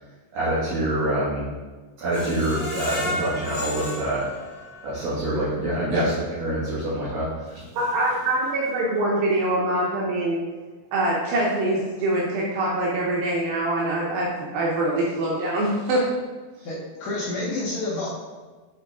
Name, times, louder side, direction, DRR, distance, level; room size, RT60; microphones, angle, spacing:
voice 1, 0.3-1.5 2.0-4.2 4.8-7.6, right 1 dB, 60° right, -12 dB, 2.9 m, -26 dB
Screech, 2.1-5.1 5.5-5.6 6.0-6.1, left 1 dB, 55° left, 2.2 m, -33 dB
voice 2, 7.7-10.4 10.9-16.0 16.6-16.7, right 1 dB, 90° right, -4 dB, 2.1 m, -24 dB
voice 3, 16.6-18.1, left 2 dB, 90° left, -8 dB, 1.5 m, -29 dB
8.8 x 3.9 x 3.6 m, 1.3 s
omnidirectional pair, 5.4 m